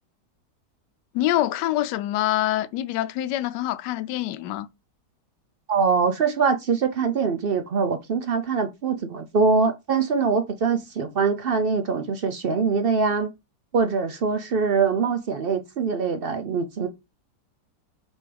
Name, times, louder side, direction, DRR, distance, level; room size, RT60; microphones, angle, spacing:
voice 1, 1.1-4.7, left 14 dB, 85° left, 1.2 m, -25 dB
voice 2, 5.7-13.3 13.7-16.9, right 5 dB, 70° right, 0.5 m, -23 dB
6.2 x 5.5 x 3.3 m
omnidirectional pair, 1.8 m